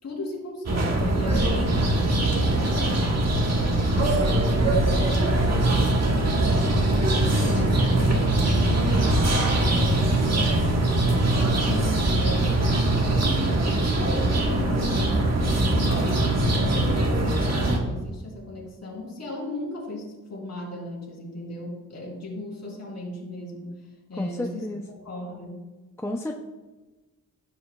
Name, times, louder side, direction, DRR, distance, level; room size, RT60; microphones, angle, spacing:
voice 1, 0.0-9.3 9.5-16.3 16.6-25.6, left 2 dB, 50° left, -3 dB, 3.3 m, -37 dB
sound 1, 0.7-17.8, right 1 dB, 50° right, 1.4 m, -22 dB
voice 2, 24.2-24.8 26.0-26.3, left 1 dB, 10° left, 2 dB, 0.5 m, -31 dB
15.5 x 7.8 x 2.3 m, 1.2 s
wide cardioid pair, 175°, 33 cm